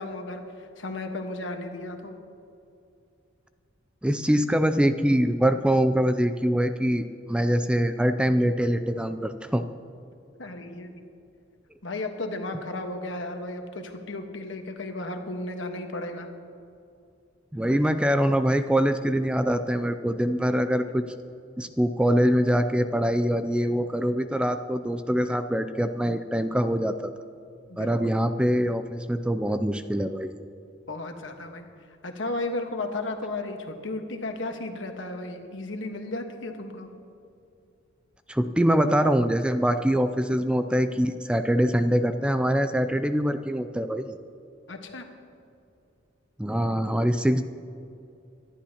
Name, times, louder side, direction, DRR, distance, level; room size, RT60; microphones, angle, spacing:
voice 1, 0.0-2.2 10.4-11.0 11.8-16.3 27.7-28.0 30.9-31.7 32.0-36.9 44.7-45.0, left 2 dB, 70° left, 4 dB, 1.3 m, -34 dB
voice 2, 4.0-9.6 17.5-21.1 21.6-27.1 27.8-30.4 38.3-44.2 46.4-47.4, equal, 5° right, 9 dB, 0.3 m, -24 dB
24.5 x 11.5 x 2.9 m, 2.6 s
head